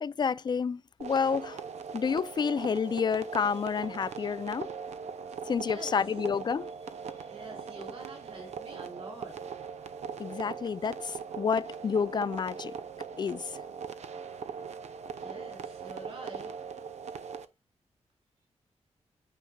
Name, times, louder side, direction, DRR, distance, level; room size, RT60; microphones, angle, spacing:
voice 1, 0.0-1.6 1.9-4.7 5.5-6.7 10.2-12.7 13.2-13.6, left 6 dB, 40° left, 0.4 m, -29 dB
sound 1, 1.0-17.5, right 6 dB, 75° right, 0.6 m, -40 dB
voice 2, 5.5-6.2 6.6-9.6 13.1-13.6 15.1-16.9, right 2 dB, 55° right, 3.6 m, -48 dB
9.1 x 5.7 x 2.3 m
wide cardioid pair, 115°, 12 cm